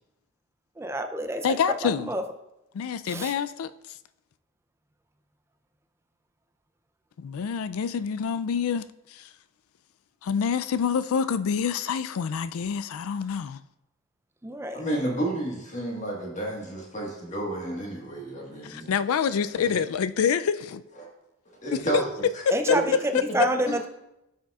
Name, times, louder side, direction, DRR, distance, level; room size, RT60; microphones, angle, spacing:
voice 1, 0.8-1.4 1.8-2.2 3.1-3.3 14.4-14.8 22.5-22.8 23.3-23.9, right 1 dB, 10° right, 0.4 m, -28 dB
voice 2, 1.4-2.1 2.7-4.0 7.2-9.3 10.2-13.6 18.6-20.8 21.7-22.0 22.5-23.5, left 6 dB, 85° left, 0.4 m, -27 dB
voice 3, 14.7-18.9 19.5-19.7 21.0-21.1 21.6-22.1 22.7-22.8, right 1 dB, 35° left, 1.5 m, -31 dB
12.5 x 6.5 x 2.4 m
head